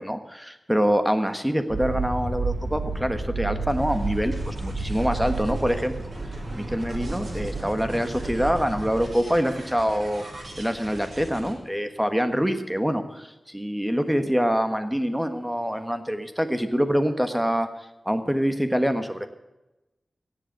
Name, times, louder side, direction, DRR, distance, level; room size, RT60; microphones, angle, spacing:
voice 1, 0.0-6.1 6.5-10.2 10.6-17.7 18.0-19.3, equal, 5° right, 8 dB, 1.4 m, -25 dB
sound 1, 1.7-9.1, right 3 dB, 35° right, 2.9 m, -31 dB
sound 2, 3.7-11.6, right 1 dB, 55° right, 5.3 m, -41 dB
17.0 x 8.1 x 9.2 m, 0.99 s
wide cardioid pair, 80°, 0 cm